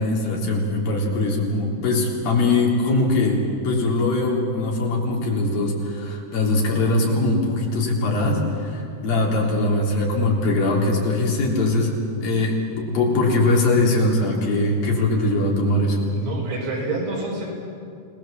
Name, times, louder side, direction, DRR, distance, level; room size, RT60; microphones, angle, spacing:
voice 1, 0.0-11.9 12.2-16.0, left 2 dB, 60° left, -2 dB, 5.1 m, -21 dB
voice 2, 15.8-17.5, right 2 dB, 90° right, -3 dB, 7.8 m, -28 dB
28.5 x 19.5 x 7.4 m, 2.4 s
omnidirectional pair, 4.6 m